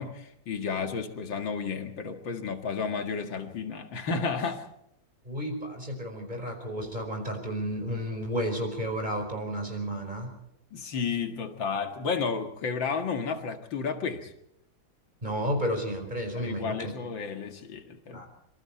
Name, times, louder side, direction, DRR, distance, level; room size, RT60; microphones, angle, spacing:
voice 1, 0.0-4.7 10.7-14.3 16.4-18.2, left 5 dB, 70° left, 6 dB, 2.6 m, -32 dB
voice 2, 5.2-10.3 15.2-16.9 18.1-18.3, equal, 20° right, 3 dB, 5.1 m, -32 dB
26.0 x 25.5 x 4.4 m, 0.80 s
omnidirectional pair, 2.2 m